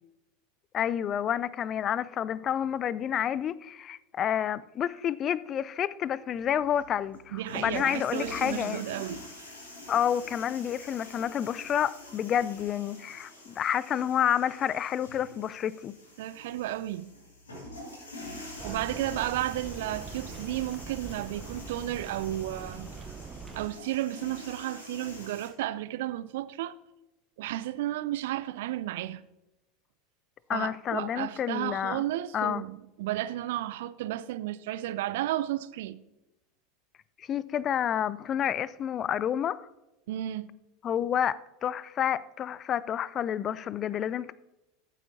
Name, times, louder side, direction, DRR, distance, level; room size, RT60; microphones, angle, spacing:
voice 1, 0.7-8.8 9.9-16.0 30.5-32.0 32.3-32.6 37.2-39.7 40.8-44.3, left 9 dB, 35° left, 0.4 m, -29 dB
sound 1, 6.3-25.5, left 1 dB, 75° left, 2.9 m, -46 dB
voice 2, 7.3-9.2 16.2-17.1 18.6-22.9 23.5-26.7 27.4-29.2 30.5-36.0 40.1-40.5, right 14 dB, 60° right, 0.5 m, -33 dB
sound 2, 18.6-23.7, right 5 dB, 25° right, 0.7 m, -43 dB
14.0 x 8.1 x 2.7 m
figure-of-eight pair, 80°, 0 cm